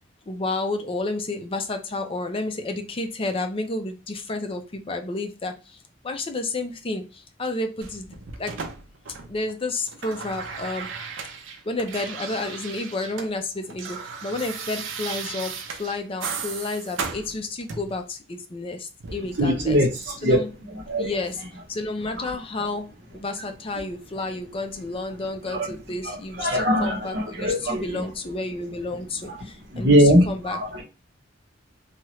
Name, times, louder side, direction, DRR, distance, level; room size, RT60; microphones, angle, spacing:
voice 1, 0.3-8.6 9.2-10.9 11.6-19.8 20.2-20.5 21.0-21.4 21.7-30.6, left 2 dB, 30° left, 6 dB, 0.4 m, -31 dB
sound 1, 7.8-9.5 9.8-13.3 13.6-18.0 19.0-19.2, right 5 dB, 80° right, 0.5 m, -35 dB
voice 2, 19.4-20.4 20.9-21.1 22.2-22.4 25.5-25.7 26.0-28.0 29.7-30.8, equal, 60° right, 1 dB, 1.0 m, -21 dB
2.9 x 2.3 x 3.1 m, 0.30 s
head